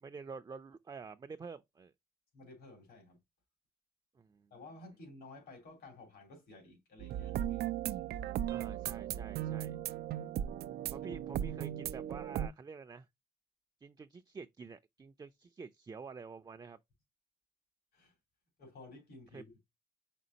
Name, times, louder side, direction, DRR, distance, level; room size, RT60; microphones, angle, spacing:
voice 1, 0.0-1.9 4.2-4.5 8.3-9.8 10.9-13.1 13.8-16.8 19.3-19.4, right 5 dB, 25° right, 0.5 m, -48 dB
voice 2, 2.3-3.2 4.5-7.7 17.9-18.1 18.6-19.6, left 2 dB, 80° left, 3.1 m, -53 dB
sound 1, 7.0-12.5, right 11 dB, 80° right, 0.4 m, -37 dB
5.2 x 3.7 x 2.8 m
cardioid pair, 85°, 16 cm